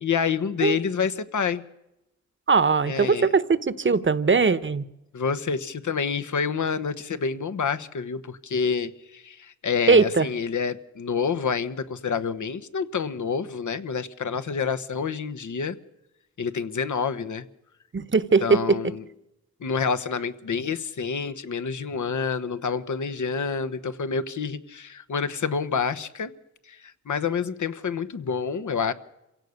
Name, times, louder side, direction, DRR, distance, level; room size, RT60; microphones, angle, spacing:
voice 1, 0.0-1.6 2.9-3.3 5.1-15.8 16.4-17.4 18.4-19.0 19.6-26.3 26.7-28.9, left 6 dB, 80° left, 1.2 m, -28 dB
voice 2, 2.5-4.8 9.9-10.3 17.9-18.8, right 4 dB, 40° right, 1.1 m, -20 dB
27.0 x 16.5 x 6.6 m
wide cardioid pair, 75°, 29 cm